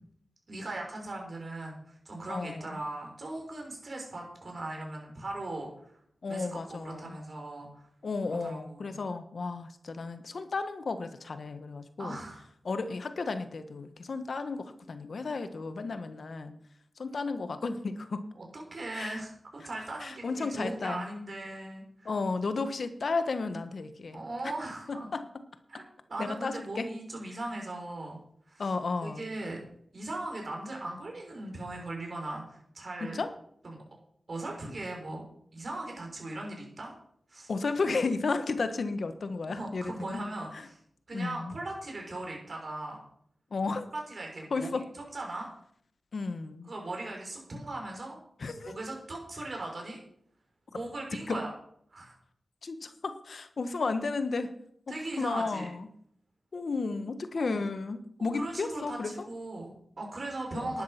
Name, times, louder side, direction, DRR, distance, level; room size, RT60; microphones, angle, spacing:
voice 1, 0.5-5.9 6.3-7.9 8.3-9.0 12.0-12.5 18.3-19.3 19.6-22.1 24.1-25.1 25.7-28.2 28.5-28.7 29.0-29.6 29.9-33.2 33.6-33.8 34.3-35.2 35.5-36.9 37.3-37.5 39.5-40.8 41.1-43.0 43.9-45.5 46.6-48.2 48.6-50.0 50.7-51.5 51.9-52.2 54.9-55.7 57.3-57.6 58.2-60.8, right 2 dB, 55° right, 0 dB, 6.4 m, -39 dB
voice 2, 2.3-2.8 6.2-7.1 8.0-12.2 12.6-16.6 17.0-18.2 18.9-19.2 20.0-21.0 22.0-24.2 24.9-25.2 26.2-26.9 28.6-29.2 33.0-33.3 37.5-40.2 41.1-41.5 43.5-43.8 44.5-44.8 46.1-46.7 48.4-48.8 51.3-51.4 52.6-54.5 55.2-55.9 56.5-59.3 60.5-60.7, left 4 dB, 65° left, 10 dB, 1.3 m, -33 dB
11.5 x 11.0 x 5.9 m, 0.67 s
cardioid pair, 60°, 0 cm